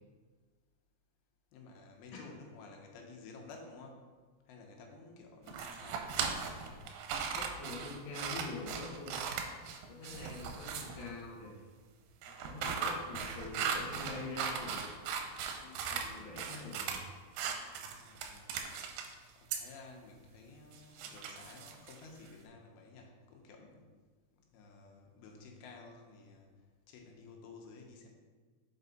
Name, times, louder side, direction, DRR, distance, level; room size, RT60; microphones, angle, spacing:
voice 1, 1.5-4.1 4.5-6.9 17.9-18.6 19.4-23.9 24.4-26.5 26.9-28.1, left 3 dB, 85° left, 1 dB, 2.7 m, -53 dB
sound 1, 5.5-11.1 12.2-16.1 16.4-17.0 17.4-19.1 19.5-19.6 20.7-22.3, right 6 dB, 90° right, 2.6 m, -38 dB
voice 2, 7.3-9.2 9.7-11.5 12.2-14.9 15.6-17.0, left 3 dB, 60° left, -5 dB, 1.3 m, -45 dB
6.5 x 4.6 x 3.9 m, 1.4 s
omnidirectional pair, 4.4 m